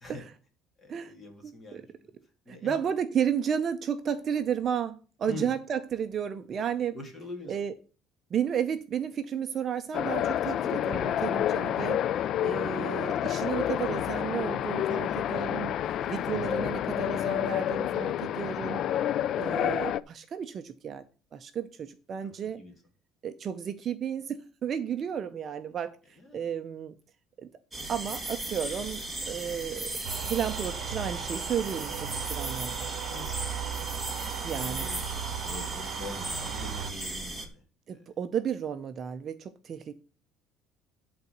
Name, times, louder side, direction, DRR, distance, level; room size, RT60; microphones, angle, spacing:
voice 1, 0.8-2.1 2.5-2.8 5.3-5.5 6.9-7.6 15.0-15.4 15.8-16.1 22.2-22.7 26.2-26.5 33.0-35.0 35.4-37.6 37.9-38.1, left 2 dB, 20° left, 2.5 m, -45 dB
voice 2, 1.4-1.8 2.5-7.0 7.5-7.7 8.3-12.0 12.4-15.8 16.1-18.8 19.4-21.0 21.3-22.6 23.2-26.9 27.4-27.5 27.9-30.0 30.2-32.9 34.4-34.9 37.9-39.9, right 8 dB, 35° right, 0.6 m, -33 dB
sound 1, 9.9-20.0, left 11 dB, 50° left, 0.4 m, -29 dB
sound 2, 27.7-37.5, right 2 dB, 10° right, 1.4 m, -37 dB
sound 3, 30.0-36.9, right 10 dB, 55° right, 1.0 m, -37 dB
11.0 x 4.0 x 6.6 m
cardioid pair, 145°, 0 cm